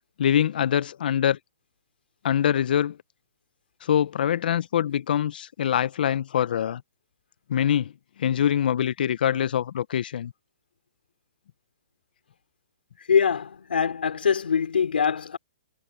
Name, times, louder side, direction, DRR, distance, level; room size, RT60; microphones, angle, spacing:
voice 1, 0.2-1.4 2.2-3.0 3.8-6.8 7.5-7.9 8.2-10.3, left 9 dB, 65° left, 0.6 m, -24 dB
voice 2, 13.1-15.4, left 7 dB, 90° left, 3.0 m, -23 dB
hypercardioid pair, 150°, 5 cm